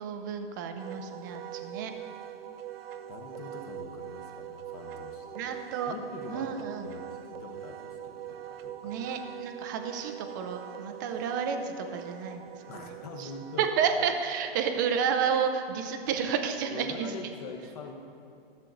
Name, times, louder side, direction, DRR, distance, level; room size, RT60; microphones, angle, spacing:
voice 1, 0.0-1.9 5.3-5.9 6.3-6.9 8.8-13.3 13.6-17.1, right 7 dB, 20° right, 6 dB, 0.5 m, -31 dB
Wind instrument woodwind instrument, 0.8-15.5, right 10 dB, 75° right, 0.5 m, -43 dB
voice 2, 3.1-5.3 5.9-6.5 6.8-8.9 12.7-13.7 16.6-17.9, left 4 dB, 40° left, 3 dB, 1.2 m, -43 dB
13.0 x 7.5 x 3.8 m, 2.8 s
hypercardioid pair, 140°, 30 cm